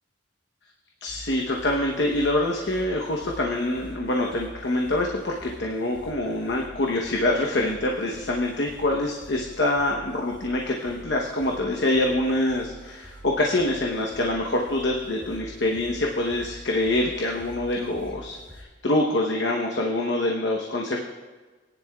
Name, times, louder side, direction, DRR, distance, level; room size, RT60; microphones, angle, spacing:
voice 1, 1.0-21.0, left 1 dB, 60° left, 0 dB, 0.9 m, -25 dB
sound 1, 1.1-18.6, equal, 10° left, 2.4 m, -46 dB
18.5 x 10.5 x 2.3 m, 1.4 s
head